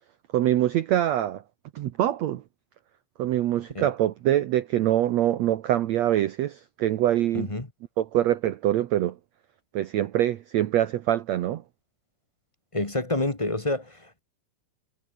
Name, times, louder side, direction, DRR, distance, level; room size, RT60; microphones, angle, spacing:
voice 1, 0.3-1.4 1.7-2.4 3.2-7.5 8.0-9.1 9.7-11.6, right 12 dB, 85° right, 1.5 m, -24 dB
voice 2, 7.3-7.7 12.7-14.2, left 2 dB, 35° left, 0.5 m, -28 dB
omnidirectional pair, 4.4 m